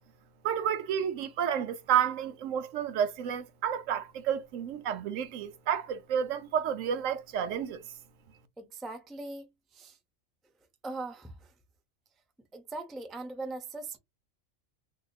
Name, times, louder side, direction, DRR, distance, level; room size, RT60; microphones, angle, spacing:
voice 1, 0.4-7.8, right 8 dB, 85° right, 1.0 m, -30 dB
voice 2, 8.6-10.0 10.8-11.3 12.5-14.0, right 2 dB, ahead, 0.3 m, -40 dB
3.9 x 2.8 x 2.3 m
omnidirectional pair, 1.3 m